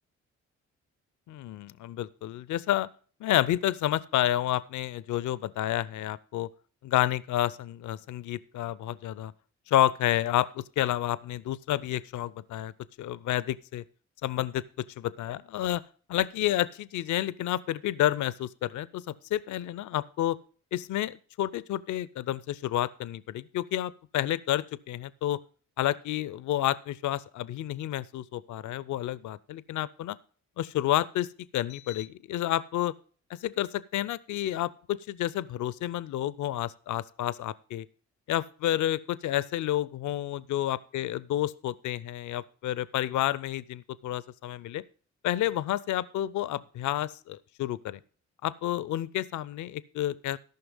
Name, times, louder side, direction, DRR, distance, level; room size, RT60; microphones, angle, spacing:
voice 1, 1.3-2.9 3.2-6.5 6.8-9.3 9.7-12.7 13.0-13.8 14.2-14.6 15.0-15.8 16.1-20.4 20.7-25.4 25.8-30.2 30.6-31.3 31.5-32.9 33.4-37.9 38.3-44.8 45.2-48.0 48.4-50.4, left 13 dB, 60° left, 20 dB, 0.5 m, -30 dB
13.0 x 5.7 x 5.3 m, 0.42 s
hypercardioid pair, 50°, 33 cm